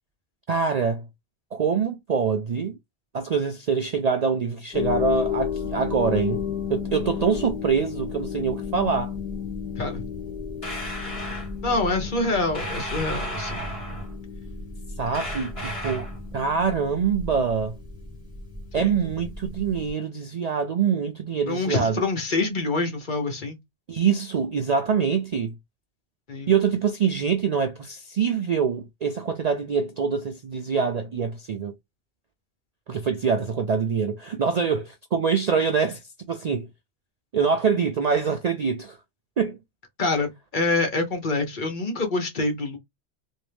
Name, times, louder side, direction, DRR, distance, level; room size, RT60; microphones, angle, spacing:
voice 1, 0.5-1.1 1.5-2.8 3.1-6.4 6.7-9.1 15.0-16.1 16.3-17.8 18.7-22.0 23.9-25.6 26.5-31.7 32.9-36.0 36.3-36.7 37.3-39.0 39.4-39.6, right 6 dB, 55° right, 0.4 m, -24 dB
sound 1, 4.7-19.9, left 6 dB, 5° right, 1.8 m, -33 dB
sound 2, 10.6-11.5 12.5-14.1 15.1-16.2, equal, 30° left, 2.3 m, -34 dB
voice 2, 11.6-13.7 18.8-19.0 21.5-23.6 26.3-26.5 40.0-42.8, left 3 dB, 50° left, 1.1 m, -26 dB
3.5 x 2.7 x 3.3 m
omnidirectional pair, 1.1 m